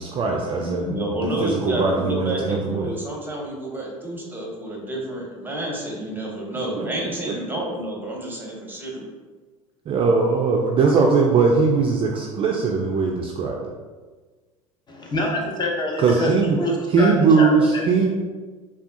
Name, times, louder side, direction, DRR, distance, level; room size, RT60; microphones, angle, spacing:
voice 1, 0.0-1.0 1.2-2.9 6.8-6.9 7.3-7.4 9.9-13.6 16.0-16.6 16.9-18.1, right 4 dB, 30° right, 0 dB, 0.3 m, -20 dB
voice 2, 0.6-9.0, right 1 dB, 10° right, -2 dB, 0.8 m, -29 dB
voice 3, 14.9-18.1, left 1 dB, 25° left, -1 dB, 0.6 m, -26 dB
3.4 x 2.3 x 2.5 m, 1.3 s
hypercardioid pair, 70°, 18 cm